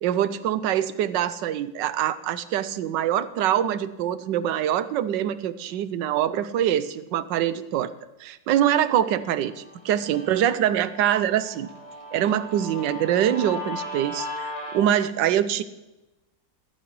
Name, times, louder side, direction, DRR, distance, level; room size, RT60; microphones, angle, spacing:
voice 1, 0.0-7.9 8.2-11.7 12.1-15.6, right 10 dB, 85° right, 14 dB, 1.3 m, -24 dB
Guitar, 9.3-14.8, left 1 dB, 15° left, 3.0 m, -37 dB
15.0 x 14.0 x 3.1 m, 1.0 s
omnidirectional pair, 1.9 m